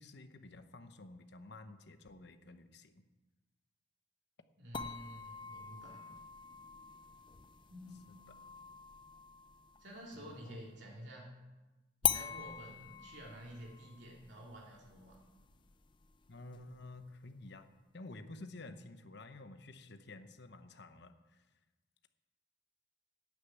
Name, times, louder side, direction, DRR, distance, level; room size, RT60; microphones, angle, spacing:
voice 1, 0.0-3.0 8.3-8.4 10.2-10.7 16.3-21.4, left 2 dB, 60° left, 9 dB, 0.9 m, -51 dB
voice 2, 4.6-6.0 7.7-8.1 9.8-11.3 12.0-15.2, equal, 65° right, -3 dB, 2.7 m, -50 dB
sound 1, 4.7-10.3 12.0-17.0, left 8 dB, 25° left, 0.5 m, -42 dB
11.5 x 6.7 x 8.8 m, 1.1 s
head